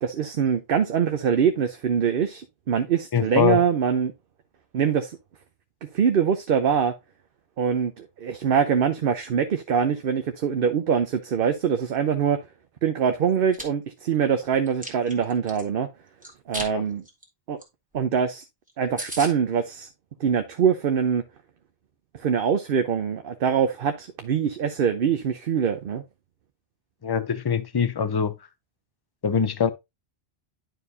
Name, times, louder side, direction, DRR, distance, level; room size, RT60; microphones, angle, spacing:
voice 1, 0.0-4.1 4.7-5.2 5.9-6.9 7.6-12.4 12.8-15.9 16.5-17.0 17.5-17.6 17.9-18.4 18.8-19.9 20.2-21.2 22.2-26.0, right 7 dB, 65° right, 0.9 m, -23 dB
voice 2, 3.1-3.6 16.6-16.8 27.0-28.3 29.2-29.7, left 7 dB, 30° left, 0.5 m, -23 dB
Chewing mastication, 13.3-13.6 14.1-15.6 16.2-16.7 17.0-17.2 17.6-17.7 17.9-18.0 18.4-18.5 18.7-18.8 19.0-19.3, equal, 10° right, 1.8 m, -35 dB
10.5 x 4.6 x 2.5 m
omnidirectional pair, 1.0 m